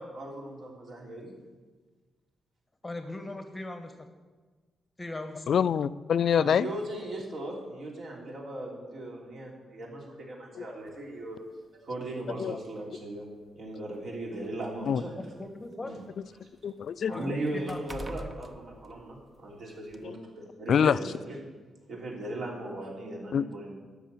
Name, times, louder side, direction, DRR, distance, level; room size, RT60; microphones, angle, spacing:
voice 1, 0.0-1.3 6.3-11.4 11.8-13.3 13.5-15.1 15.8-16.0 17.1-21.4 21.9-23.7, right 1 dB, 55° right, -1 dB, 3.3 m, -38 dB
voice 2, 2.8-4.1 5.0-5.5 15.2-16.0 17.1-18.4, left 2 dB, 15° left, 7 dB, 1.1 m, -39 dB
voice 3, 5.5-6.7 10.6-10.7 12.4-12.6 14.9-15.0 16.6-17.1 20.0-20.1 20.7-21.0 23.3-23.4, left 8 dB, 55° left, 16 dB, 0.4 m, -25 dB
sound 1, 10.9-11.0 12.1-12.2 12.6-12.8 13.7-15.7 16.1-19.5 19.9-20.0, right 1 dB, 20° right, 0.8 m, -46 dB
13.0 x 6.4 x 8.5 m, 1.3 s
cardioid pair, 145°, 0 cm